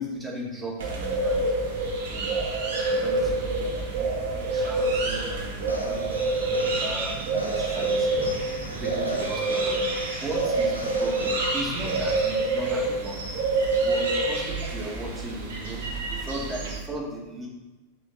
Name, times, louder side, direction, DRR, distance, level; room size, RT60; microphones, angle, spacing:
voice 1, 0.0-1.5 2.1-2.3 2.9-9.9 10.2-13.2 13.8-17.5, right 1 dB, 10° right, -3 dB, 2.1 m, -36 dB
sound 1, 0.8-16.8, right 2 dB, 55° right, 1.2 m, -27 dB
Boom, 3.2-9.1, right 1 dB, 20° left, 1.2 m, -44 dB
sound 2, 5.6-11.6, left 2 dB, 80° left, 0.7 m, -43 dB
7.2 x 6.0 x 3.6 m, 1.1 s
figure-of-eight pair, 90°, 0 cm